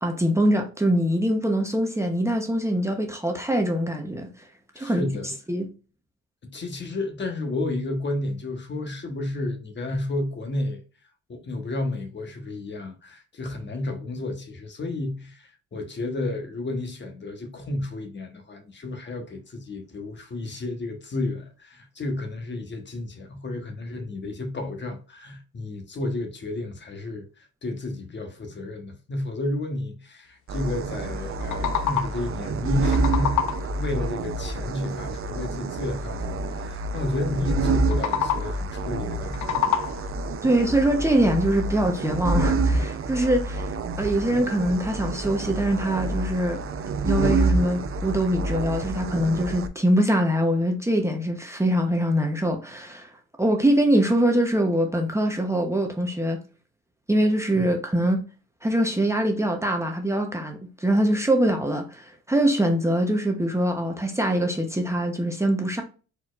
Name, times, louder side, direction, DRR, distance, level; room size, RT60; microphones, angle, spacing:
voice 1, 0.0-4.3 4.8-5.0 5.5-5.7 40.4-43.7 44.0-46.6 47.0-53.1 53.4-56.4 57.1-58.2 58.6-65.8, right 1 dB, 10° right, 0.9 m, -23 dB
voice 2, 4.7-5.3 6.4-10.8 11.3-39.5 57.5-57.8, left 2 dB, 35° left, 1.2 m, -32 dB
sound 1, 30.5-49.7, right 2 dB, 45° right, 0.6 m, -28 dB
sound 2, 31.2-32.3 32.7-33.8 37.8-38.7 39.1-40.2, left 9 dB, 85° left, 0.7 m, -27 dB
4.4 x 4.2 x 2.5 m
cardioid pair, 90°, 30 cm